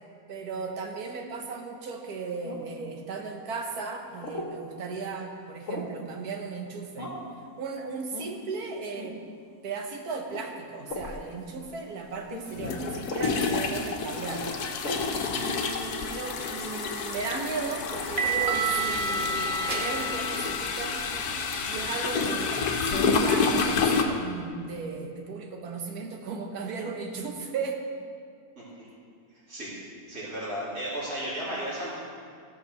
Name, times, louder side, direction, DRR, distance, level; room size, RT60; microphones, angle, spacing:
voice 1, 0.3-7.1 7.6-9.2 9.6-14.5 15.3-21.0 21.7-22.6 22.9-27.8, right 4 dB, 90° right, 3 dB, 1.7 m, -36 dB
sound 1, 2.4-2.8 4.2-4.6 5.7-6.0 7.0-7.3 8.1-8.3 9.0-9.2 10.3-10.5 10.9-11.1 12.3-12.5 13.1-13.4 14.8-15.1, left 2 dB, 55° left, 1.5 m, -37 dB
sound 2, 11.0-11.1 12.5-24.0, left 5 dB, 85° left, 1.4 m, -29 dB
sound 3, 17.1-21.9, right 4 dB, 40° right, 1.2 m, -31 dB
voice 2, 30.1-31.9, equal, 70° right, -10 dB, 3.2 m, -34 dB
15.5 x 5.9 x 6.5 m, 2.2 s
omnidirectional pair, 1.6 m